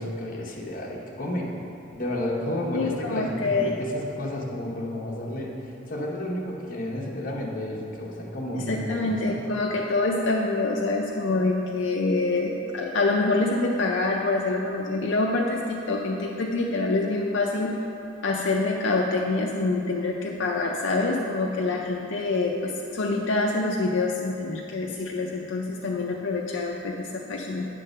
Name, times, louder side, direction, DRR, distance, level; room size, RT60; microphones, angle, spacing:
voice 1, 0.0-1.7 1.9-5.5 5.9-9.4 12.6-12.7, left 1 dB, 40° left, -2 dB, 1.0 m, -31 dB
voice 2, 2.7-3.8 8.5-17.8 18.2-27.7, left 3 dB, 65° left, -1 dB, 0.5 m, -26 dB
8.9 x 3.8 x 6.4 m, 2.9 s
head